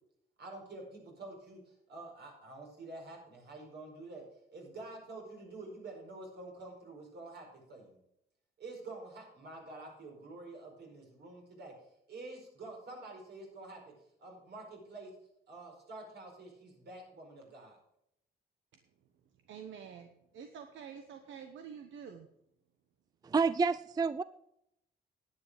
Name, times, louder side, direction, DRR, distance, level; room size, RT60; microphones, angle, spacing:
voice 1, 0.4-8.0 8.6-11.7 12.1-13.8 14.2-15.1 15.5-17.8, right 2 dB, 55° right, 1 dB, 5.0 m, -48 dB
voice 2, 19.5-22.3, right 7 dB, 75° right, 6 dB, 1.1 m, -48 dB
voice 3, 23.2-24.2, right 4 dB, 20° right, 16 dB, 0.3 m, -29 dB
10.5 x 9.3 x 5.1 m, 0.78 s
cardioid pair, 90°, 20 cm